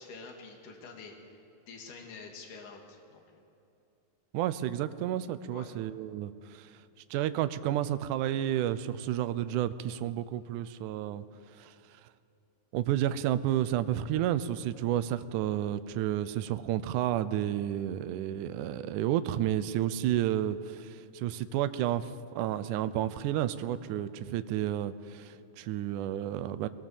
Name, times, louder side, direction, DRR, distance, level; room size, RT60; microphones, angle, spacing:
voice 1, 0.0-1.4 1.7-3.2 5.5-5.8, left 4 dB, 65° left, 1 dB, 3.7 m, -47 dB
voice 2, 4.3-6.7 7.1-11.2 11.6-11.7 12.7-26.7, right 12 dB, 75° right, 13 dB, 2.0 m, -31 dB
22.0 x 19.5 x 7.4 m, 2.6 s
omnidirectional pair, 4.1 m